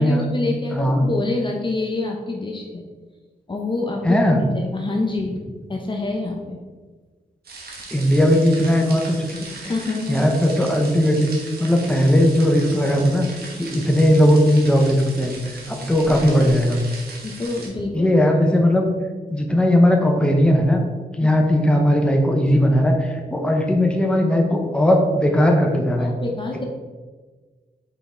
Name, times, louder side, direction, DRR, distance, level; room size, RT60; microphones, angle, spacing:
voice 1, 0.0-2.8 3.5-4.2 4.5-5.4 5.7-6.6 9.6-10.2 17.2-18.1 21.2-21.3 26.0-26.6, left 2 dB, 30° left, 1 dB, 0.7 m, -26 dB
voice 2, 0.7-1.0 4.0-4.5 7.9-9.2 9.6-9.7 10.1-11.3 11.6-13.3 13.6-15.3 15.7-16.8 17.9-18.9 19.3-20.8 21.1-26.1, equal, 5° left, 2 dB, 0.9 m, -18 dB
sound 1, 7.4-17.7, right 3 dB, 75° right, 1.3 m, -38 dB
5.6 x 5.2 x 3.7 m, 1.4 s
wide cardioid pair, 110°, 16 cm